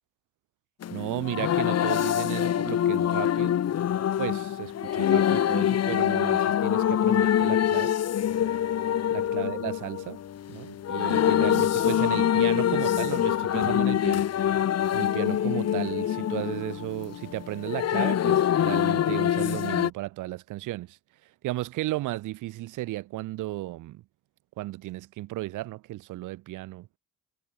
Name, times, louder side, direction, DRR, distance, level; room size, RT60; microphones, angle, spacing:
sound 1, 0.8-19.9, left 10 dB, 55° left, 1.3 m, -25 dB
voice 1, 0.9-3.6 4.2-8.0 9.1-10.2 10.5-24.0 24.6-26.9, right 17 dB, 85° right, 1.0 m, -34 dB
cardioid pair, 90°, 30 cm